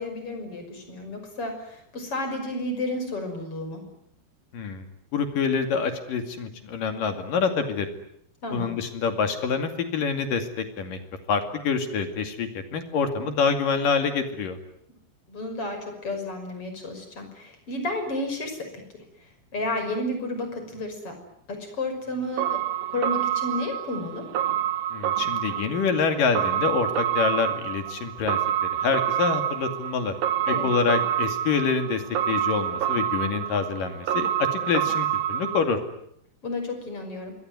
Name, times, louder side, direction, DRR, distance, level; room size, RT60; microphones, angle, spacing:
voice 1, 0.0-3.8 8.4-8.7 15.3-18.7 18.9-21.2 21.5-22.6 22.9-24.3 30.5-30.7 36.4-37.3, left 1 dB, 30° left, 6 dB, 6.6 m, -32 dB
voice 2, 4.5-4.9 5.1-7.9 8.5-11.0 11.3-14.6 24.9-28.4 28.7-30.1 30.5-35.8, left 5 dB, 55° left, 7 dB, 3.8 m, -26 dB
sound 1, 22.4-35.6, right 11 dB, 60° right, 3.0 m, -27 dB
27.0 x 22.5 x 9.4 m, 0.73 s
omnidirectional pair, 4.9 m